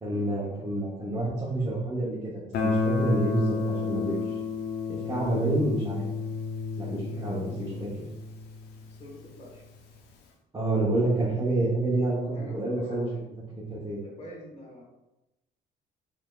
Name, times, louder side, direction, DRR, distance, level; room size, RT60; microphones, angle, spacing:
voice 1, 0.0-4.2 4.9-6.0 6.8-7.9 10.5-13.1 13.5-14.0, right 2 dB, 20° right, -7 dB, 0.9 m, -28 dB
Guitar, 2.5-9.3, left 4 dB, 75° left, 0.6 m, -31 dB
voice 2, 6.9-7.8 8.9-9.6 12.3-13.2 14.0-14.8, left 1 dB, 35° left, -2 dB, 1.4 m, -46 dB
4.8 x 3.4 x 2.4 m, 0.99 s
cardioid pair, 110°, 17 cm